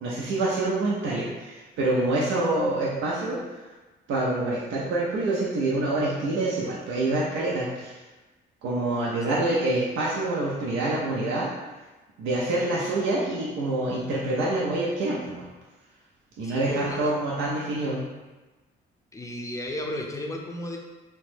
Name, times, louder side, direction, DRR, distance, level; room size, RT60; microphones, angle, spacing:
voice 1, 0.0-3.4 4.1-7.9 8.6-11.5 12.2-15.5 16.4-18.0, right 2 dB, 85° right, -5 dB, 0.5 m, -26 dB
voice 2, 16.4-17.2 19.1-20.8, left 1 dB, 15° left, 0 dB, 0.5 m, -33 dB
2.9 x 2.1 x 3.2 m, 1.2 s
cardioid pair, 90°, 20 cm